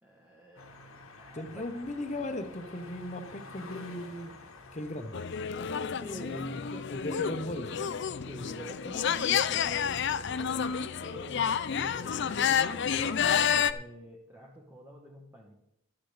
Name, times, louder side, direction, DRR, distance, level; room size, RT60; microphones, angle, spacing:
voice 1, 0.0-1.7 5.6-7.1 8.2-15.5, equal, 10° right, -2 dB, 1.4 m, -48 dB
sound 1, 0.6-10.9, left 2 dB, 90° left, 1.7 m, -49 dB
voice 2, 1.3-4.3 4.7-5.1 6.9-8.0, left 1 dB, 35° left, 7 dB, 1.1 m, -37 dB
sound 2, 5.1-13.7, left 8 dB, 60° left, 0.5 m, -29 dB
14.5 x 12.0 x 3.4 m, 0.80 s
head